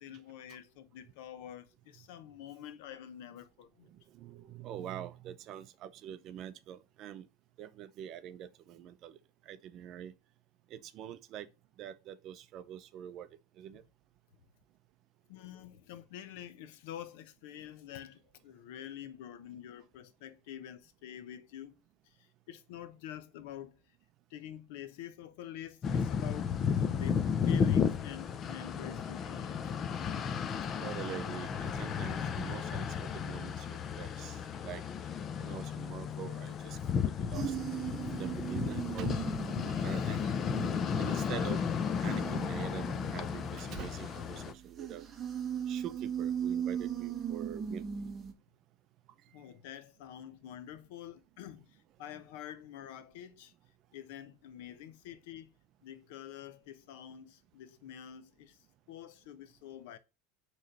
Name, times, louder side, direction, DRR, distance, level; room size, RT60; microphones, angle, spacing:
voice 1, 0.0-3.9 15.3-21.7 22.0-23.8 24.3-29.7 30.5-30.6 49.3-53.5 53.9-55.5 55.8-58.6 58.9-60.0, left 10 dB, 70° left, 0.8 m, -47 dB
voice 2, 3.9-7.3 7.6-9.2 9.4-10.1 10.7-11.5 11.8-13.3 13.6-13.8 30.8-34.8 35.4-36.8 37.0-37.6 38.1-39.3 39.6-40.4 41.0-41.7 42.0-45.1 45.7-47.8 49.3-49.5, right 10 dB, 40° right, 0.5 m, -45 dB
sound 1, 25.8-44.5, left 7 dB, 30° left, 0.5 m, -33 dB
sound 2, 37.3-48.3, right 8 dB, 20° right, 0.9 m, -39 dB
6.5 x 3.1 x 5.2 m
supercardioid pair, 150°, 0 cm